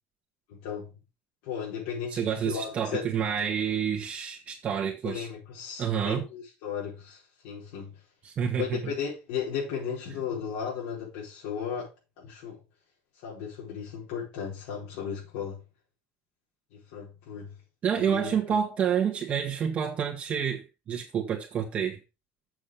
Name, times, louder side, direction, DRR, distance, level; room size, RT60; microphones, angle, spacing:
voice 1, 0.5-0.9 1.4-3.0 5.0-8.0 8.6-11.9 12.2-12.6 13.2-15.6 16.7-17.6 17.9-18.6, left 7 dB, 85° left, 4.6 m, -35 dB
voice 2, 2.1-5.2 5.8-6.2 8.2-8.8 17.8-22.0, right 8 dB, 35° right, 1.6 m, -28 dB
7.6 x 6.3 x 5.1 m
cardioid pair, 160°, 4 cm